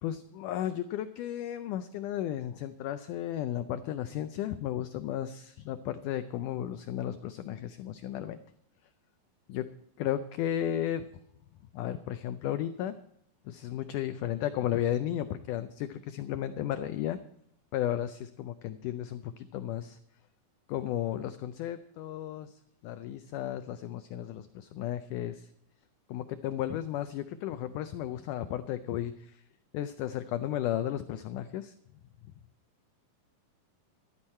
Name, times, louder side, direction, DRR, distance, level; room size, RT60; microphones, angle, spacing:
voice 1, 0.0-8.4 9.5-9.7 10.0-11.1 11.7-12.9 13.5-17.2 17.7-20.0 20.7-25.5 26.1-29.4 29.7-31.7, left 11 dB, 85° left, 11 dB, 1.8 m, -34 dB
14.5 x 12.5 x 4.3 m, 0.75 s
omnidirectional pair, 4.3 m